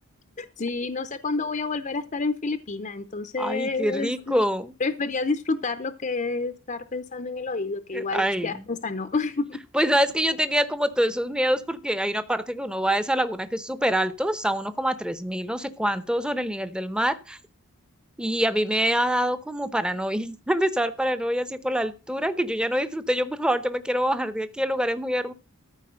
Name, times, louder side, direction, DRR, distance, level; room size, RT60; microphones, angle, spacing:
voice 1, 0.4-4.5 4.8-9.6, left 3 dB, 35° left, 10 dB, 0.7 m, -29 dB
voice 2, 3.4-4.7 7.9-8.6 9.7-17.4 18.2-25.3, equal, 5° right, 12 dB, 0.8 m, -25 dB
14.0 x 4.8 x 6.4 m, 0.32 s
head